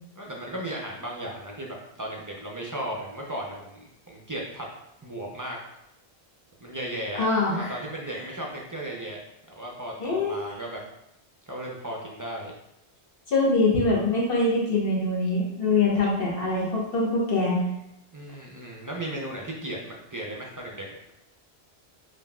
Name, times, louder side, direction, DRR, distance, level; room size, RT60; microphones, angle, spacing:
voice 1, 0.2-3.8 4.1-4.7 5.0-5.6 6.6-7.3 7.6-9.2 9.6-10.8 11.5-12.5 18.1-21.0, right 1 dB, 30° right, -2 dB, 0.3 m, -35 dB
voice 2, 7.2-8.2 10.0-10.3 13.3-17.6, left 2 dB, 60° left, -4 dB, 1.2 m, -24 dB
5.5 x 2.6 x 2.2 m, 0.84 s
omnidirectional pair, 1.1 m